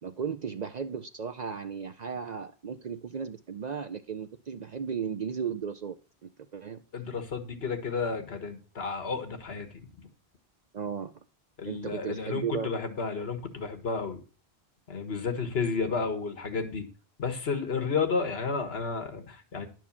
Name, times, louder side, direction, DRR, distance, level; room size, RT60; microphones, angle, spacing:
voice 1, 0.0-6.0 6.2-6.8 10.7-11.1 11.6-12.7, right 7 dB, 50° right, 10 dB, 0.5 m, -35 dB
voice 2, 6.9-9.8 11.6-14.2 14.9-16.8 17.2-19.7, left 5 dB, 70° left, 6 dB, 1.6 m, -32 dB
11.0 x 4.6 x 7.2 m, 0.37 s
omnidirectional pair, 1.1 m